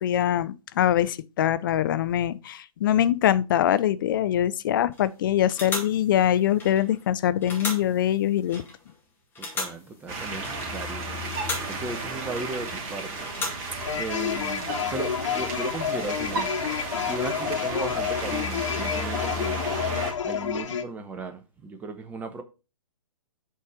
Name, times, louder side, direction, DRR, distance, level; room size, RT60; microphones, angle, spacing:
voice 1, 0.0-8.6, left 11 dB, 35° left, 0.5 m, -23 dB
sound 1, 4.9-5.1 5.5-7.1 7.4-9.0 9.3-10.9 11.2-12.8 13.2-14.4, left 3 dB, 10° left, 2.2 m, -37 dB
voice 2, 9.3-13.4 13.9-16.6 17.1-19.6 20.2-22.4, right 3 dB, 10° right, 0.8 m, -36 dB
sound 2, 10.1-20.1, right 2 dB, 30° right, 2.4 m, -33 dB
sound 3, 13.8-20.8, left 8 dB, 55° left, 1.0 m, -29 dB
8.3 x 4.3 x 4.9 m
figure-of-eight pair, 130°, 19 cm